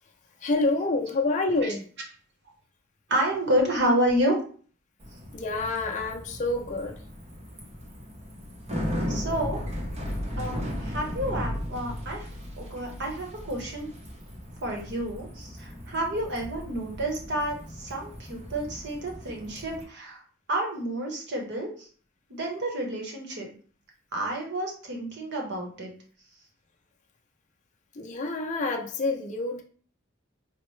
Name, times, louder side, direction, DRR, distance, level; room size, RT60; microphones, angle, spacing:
voice 1, 0.4-1.9 5.3-7.0 12.8-12.9 27.9-29.6, left 2 dB, 35° left, 1 dB, 0.5 m, -28 dB
voice 2, 3.1-4.4 9.1-9.6 10.4-12.3 12.6-13.9 14.6-20.2 20.5-21.9 22.3-23.5 24.1-25.9, right 1 dB, 55° right, 1 dB, 0.9 m, -29 dB
Bicycle, 5.0-19.8, equal, 30° right, 0.7 m, -36 dB
4.1 x 2.0 x 3.1 m, 0.43 s
head